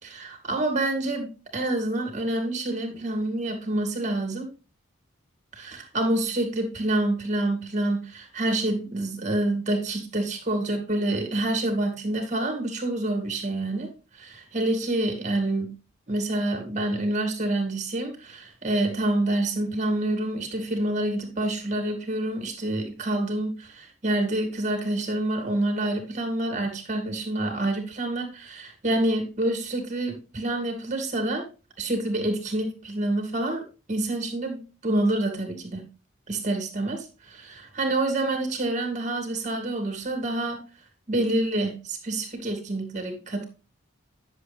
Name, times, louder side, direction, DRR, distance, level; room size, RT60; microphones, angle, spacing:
voice 1, 0.0-4.5 5.5-13.9 14.1-15.7 16.1-31.4 31.8-33.6 33.9-35.8 36.3-40.6 41.1-43.4, right 1 dB, 35° right, 5 dB, 2.3 m, -27 dB
10.5 x 7.0 x 3.5 m, 0.32 s
head